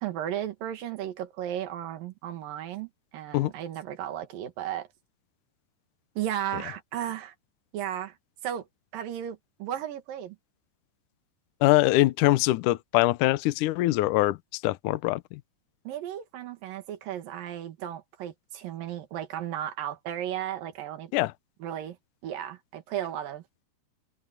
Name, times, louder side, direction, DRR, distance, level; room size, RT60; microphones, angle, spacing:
voice 1, 0.0-4.9 6.2-7.3 7.7-8.2 8.4-8.7 8.9-10.4 15.8-21.1 21.6-22.0 22.2-23.4, right 11 dB, 65° right, 3.2 m, -35 dB
voice 2, 11.6-15.4 21.1-21.3, left 18 dB, 80° left, 1.8 m, -23 dB
omnidirectional pair, 4.6 m